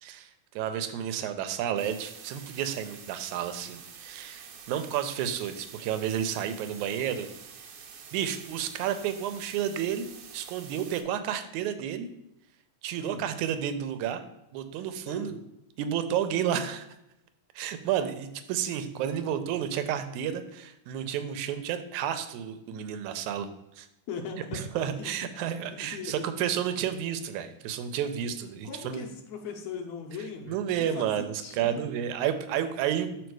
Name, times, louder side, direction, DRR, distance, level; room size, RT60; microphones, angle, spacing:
voice 1, 0.0-7.3 8.1-10.1 10.3-12.1 12.8-14.2 14.5-15.4 15.8-16.9 17.6-23.5 23.8-23.9 24.5-29.1 30.5-33.3, right 9 dB, 80° right, 9 dB, 2.0 m, -31 dB
sound 1, 1.8-11.0, right 6 dB, 65° right, 1.6 m, -48 dB
voice 2, 24.1-24.6 25.0-25.1 25.7-26.3 28.6-31.9, left 6 dB, 75° left, 3 dB, 1.9 m, -39 dB
6.3 x 4.8 x 4.6 m, 0.85 s
omnidirectional pair, 3.5 m